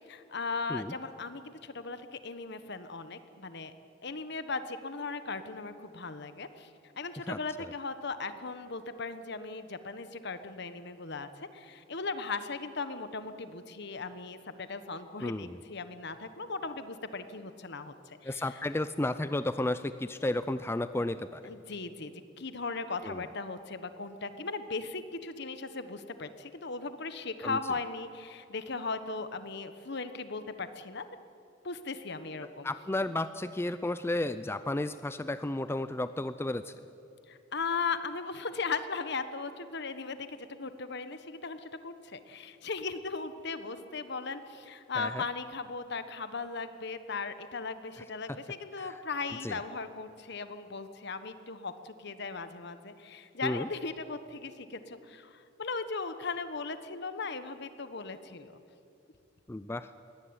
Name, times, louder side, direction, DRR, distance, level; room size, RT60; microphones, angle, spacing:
voice 1, 0.1-3.7 4.0-6.7 6.9-18.6 21.4-31.0 31.6-32.7 37.3-58.6, left 4 dB, 60° left, 11 dB, 1.3 m, -38 dB
voice 2, 7.3-7.7 15.2-15.6 18.2-21.5 23.0-23.2 27.4-27.6 32.6-36.8 45.0-45.2 48.8-49.0 49.4-49.6 53.4-53.7 59.5-59.9, left 1 dB, 15° left, 12 dB, 0.5 m, -33 dB
22.0 x 17.5 x 9.8 m, 2.8 s
head